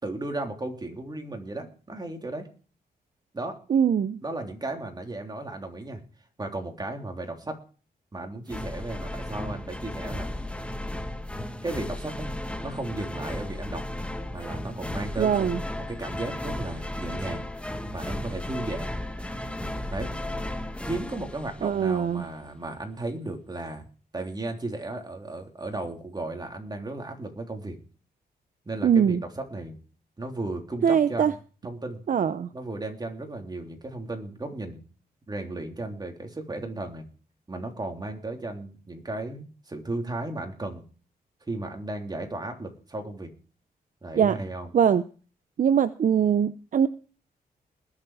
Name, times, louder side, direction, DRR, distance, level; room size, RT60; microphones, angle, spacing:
voice 1, 0.0-2.5 3.3-3.6 4.2-6.0 6.4-7.5 8.1-10.3 11.6-12.3 12.6-13.8 14.3-17.5 17.9-18.9 19.9-20.1 20.8-23.8 24.1-27.8 28.6-29.7 30.2-31.4 31.6-32.0 32.5-34.8 35.3-37.0 37.5-40.8 41.5-43.3 44.0-44.7, right 2 dB, 25° right, 3 dB, 3.4 m, -35 dB
voice 2, 3.7-4.2 15.2-15.6 21.6-22.3 28.8-29.2 30.8-31.3 32.1-32.5 44.1-44.4 44.7-45.0 45.6-46.9, right 8 dB, 55° right, 13 dB, 0.7 m, -22 dB
sound 1, 8.5-22.1, left 1 dB, 5° left, 1.3 m, -35 dB
20.5 x 7.5 x 4.9 m, 0.38 s
cardioid pair, 90°, 16 cm